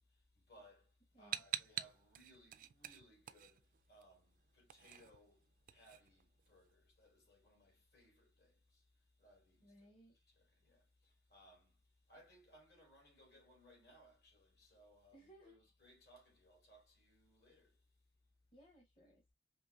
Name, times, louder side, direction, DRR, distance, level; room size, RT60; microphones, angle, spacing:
voice 1, 0.0-17.9, equal, 65° left, 3.2 m, -66 dB
sound 1, 1.3-4.0 4.3-6.7, right 11 dB, 50° right, 0.3 m, -46 dB
voice 2, 9.6-10.1 15.1-15.6 18.5-19.3, right 1 dB, 30° left, 0.9 m, -63 dB
5.3 x 2.8 x 2.3 m
head